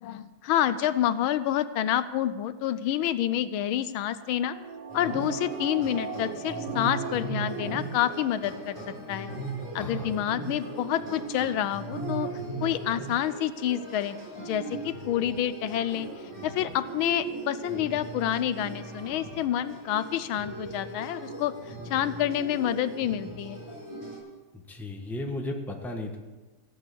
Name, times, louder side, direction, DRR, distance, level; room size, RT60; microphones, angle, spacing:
voice 1, 0.0-4.6 4.9-8.8 9.1-9.3 9.7-12.3 12.6-16.1 16.4-21.5 21.9-23.6, left 11 dB, 80° left, 14 dB, 1.5 m, -28 dB
sound 1, 3.9-8.7 9.1-9.2, right 5 dB, 50° right, 2.0 m, -40 dB
sound 2, 4.9-24.2, right 3 dB, 30° right, 6.4 m, -38 dB
voice 2, 9.8-10.1 24.7-26.2, left 1 dB, ahead, 2 dB, 1.1 m, -35 dB
16.5 x 8.1 x 8.5 m, 1.2 s
omnidirectional pair, 2.2 m